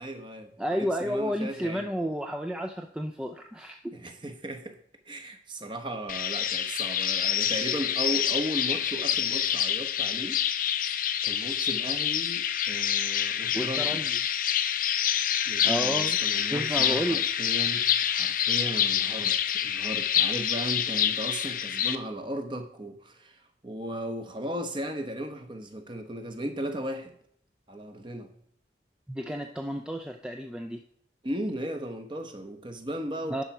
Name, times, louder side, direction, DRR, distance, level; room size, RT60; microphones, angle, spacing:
voice 1, 0.0-1.9 3.9-4.7 5.1-10.4 11.2-14.0 15.5-27.1 27.7-28.3 31.2-33.4, right 1 dB, 25° right, 6 dB, 1.0 m, -36 dB
voice 2, 0.6-3.9 13.5-14.2 15.6-16.2 16.5-17.2 29.1-30.8 33.3-33.4, equal, 5° right, 3 dB, 0.4 m, -31 dB
sound 1, 6.1-21.9, left 9 dB, 50° left, 0.6 m, -27 dB
11.0 x 4.5 x 6.0 m, 0.66 s
head